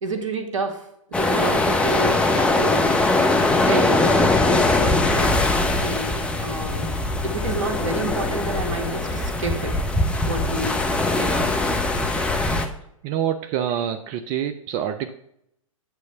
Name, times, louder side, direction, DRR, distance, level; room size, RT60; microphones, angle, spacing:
voice 1, 0.0-2.9 3.7-5.4 5.8-9.7 10.2-10.8 11.1-11.5, right 3 dB, 65° right, 5 dB, 1.4 m, -29 dB
sound 1, 1.1-12.7, left 2 dB, 5° left, 0.7 m, -21 dB
voice 2, 13.0-15.1, right 10 dB, 30° right, 8 dB, 0.4 m, -26 dB
8.9 x 3.2 x 6.6 m, 0.74 s
figure-of-eight pair, 110°, 18 cm